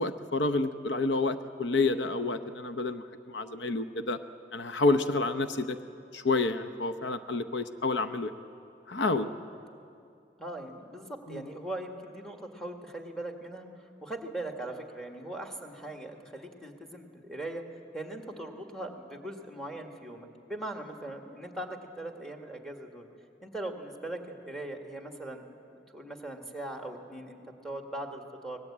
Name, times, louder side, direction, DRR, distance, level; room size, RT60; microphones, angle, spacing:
voice 1, 0.0-4.2 4.5-5.8 6.1-8.3 8.9-9.3 11.3-11.4, left 3 dB, 75° left, 9 dB, 0.8 m, -29 dB
voice 2, 10.4-13.7 14.0-17.6 17.9-23.1 23.4-25.4 25.9-28.6, right 1 dB, 5° left, 3 dB, 1.7 m, -40 dB
24.0 x 19.0 x 8.6 m, 2.5 s
head